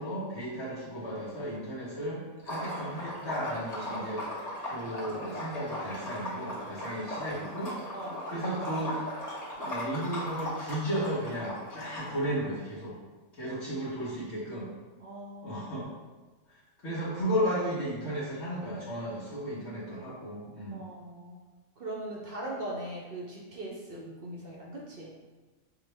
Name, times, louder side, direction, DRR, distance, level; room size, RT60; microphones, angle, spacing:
voice 1, 0.0-4.2 4.6-7.7 8.3-9.0 9.6-12.9 13.3-14.7 15.4-15.9 16.5-20.8, equal, 55° left, -9 dB, 1.3 m, -34 dB
Liquid, 2.4-12.3, equal, 30° left, 1.1 m, -38 dB
voice 2, 7.9-8.3 15.0-15.6 20.7-21.4 21.8-25.1, right 1 dB, 55° right, -2 dB, 0.7 m, -40 dB
5.7 x 2.2 x 3.3 m, 1.3 s
omnidirectional pair, 1.5 m